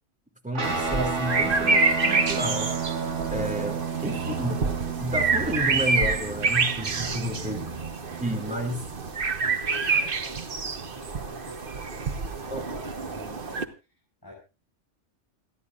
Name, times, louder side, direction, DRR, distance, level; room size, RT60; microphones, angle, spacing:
voice 1, 0.4-2.7 3.3-3.8 4.0-7.6 8.2-8.8 12.5-12.6, equal, 5° right, 3 dB, 2.9 m, -31 dB
Guitar, 0.5-9.3, right 5 dB, 75° right, 2.9 m, -33 dB
sound 1, 0.6-13.6, right 4 dB, 50° right, 1.4 m, -27 dB
voice 2, 3.2-3.7 6.9-7.6 8.3-8.9 9.4-13.7 14.2-14.3, left 1 dB, 20° left, -5 dB, 6.8 m, -45 dB
29.0 x 11.0 x 2.6 m, 0.31 s
omnidirectional pair, 1.2 m